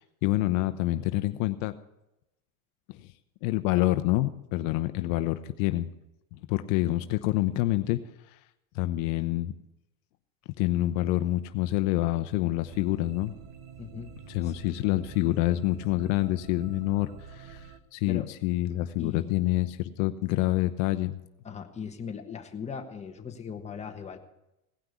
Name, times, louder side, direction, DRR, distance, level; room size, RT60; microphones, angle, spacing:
voice 1, 0.0-1.7 2.9-3.1 3.4-5.9 6.3-8.0 8.7-9.5 10.6-13.3 14.3-21.2, left 16 dB, 65° left, 10 dB, 0.8 m, -27 dB
sound 1, 12.7-17.8, right 6 dB, 50° right, 1.3 m, -47 dB
voice 2, 13.8-14.1 14.4-14.6 18.0-18.3 19.0-19.4 21.4-24.2, left 6 dB, 15° left, 3 dB, 1.3 m, -39 dB
17.5 x 5.9 x 8.1 m, 0.91 s
supercardioid pair, 130°, 44 cm